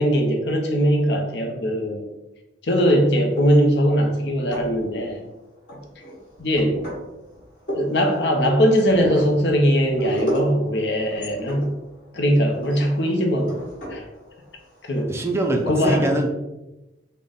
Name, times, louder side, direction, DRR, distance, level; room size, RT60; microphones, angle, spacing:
voice 1, 0.0-2.1 2.6-5.2 6.4-6.8 7.7-11.7 12.1-13.6 13.9-14.1 14.8-15.1 15.7-16.1, equal, 65° left, 3 dB, 0.6 m, -20 dB
sound 1, 3.2-3.8 4.3-5.2 5.7-15.6, right 1 dB, 50° left, 1.4 m, -33 dB
voice 2, 15.1-16.3, right 1 dB, 15° right, 3 dB, 0.3 m, -23 dB
3.8 x 2.1 x 3.4 m, 0.99 s
head